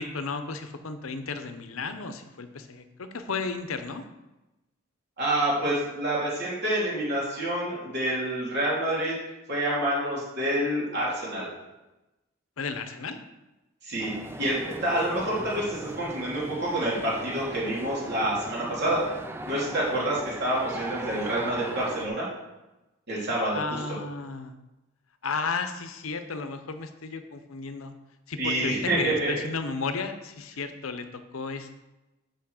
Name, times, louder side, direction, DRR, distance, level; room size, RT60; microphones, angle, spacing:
voice 1, 0.0-4.0 12.6-13.2 23.5-24.5 25.2-27.9 28.3-31.7, left 4 dB, 85° left, 9 dB, 0.8 m, -33 dB
voice 2, 5.2-9.2 9.5-11.5 13.8-14.1 14.4-19.0 19.4-22.3 23.1-23.8 28.4-29.3, right 1 dB, 55° right, -6 dB, 3.2 m, -27 dB
sound 1, 14.0-22.1, right 1 dB, 10° right, 0.4 m, -38 dB
5.9 x 5.7 x 6.5 m, 1.0 s
head